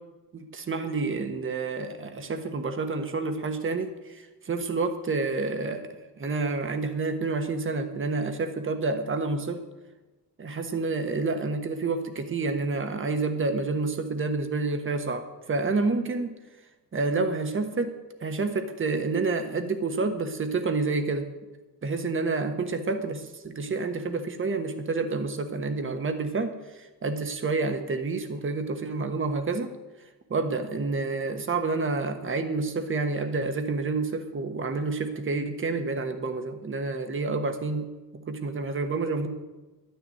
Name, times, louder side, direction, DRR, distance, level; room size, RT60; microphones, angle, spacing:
voice 1, 0.3-9.6 10.4-16.3 16.9-17.9 18.2-21.3 21.8-29.7 30.3-37.9 38.1-39.3, right 3 dB, 35° right, 7 dB, 1.3 m, -29 dB
11.5 x 6.8 x 9.3 m, 1.1 s
cardioid pair, 145°, 38 cm